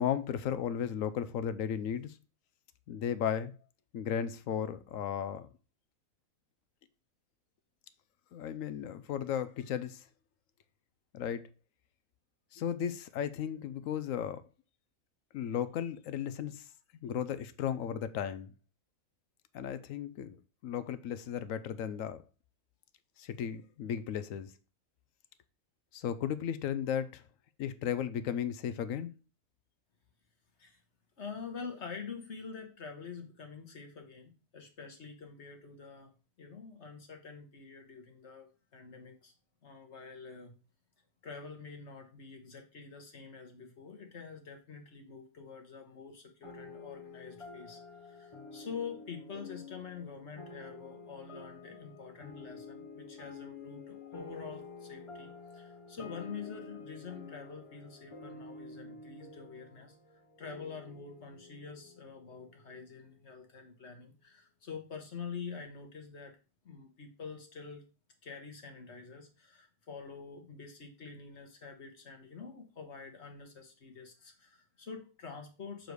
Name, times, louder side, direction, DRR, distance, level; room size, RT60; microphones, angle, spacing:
voice 1, 0.0-2.2 2.9-3.5 3.9-5.5 8.3-10.0 11.1-11.4 12.5-14.4 15.3-16.7 17.0-18.5 19.5-20.4 20.6-22.2 23.2-24.5 25.9-27.2 27.6-29.1, left 9 dB, 70° left, 0.9 m, -35 dB
voice 2, 31.2-36.1 36.4-39.3 39.6-40.5 41.2-60.0 60.4-66.3 66.6-67.8 68.2-75.9, left 5 dB, 50° left, 1.4 m, -46 dB
sound 1, 46.4-63.2, left 4 dB, 30° left, 0.6 m, -49 dB
6.7 x 4.0 x 4.7 m
omnidirectional pair, 1.6 m